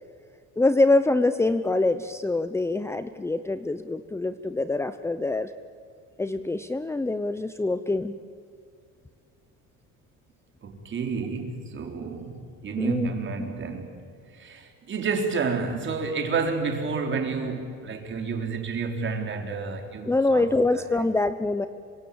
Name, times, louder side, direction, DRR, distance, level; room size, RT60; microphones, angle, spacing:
voice 1, 0.6-5.5 6.2-8.2 12.8-13.1 20.1-21.7, left 2 dB, 10° left, 0.7 m, -24 dB
voice 2, 10.6-14.0 14.3-20.5 20.7-20.8, right 4 dB, 40° right, 4.2 m, -30 dB
27.0 x 24.5 x 8.7 m
cardioid pair, 130°, 30 cm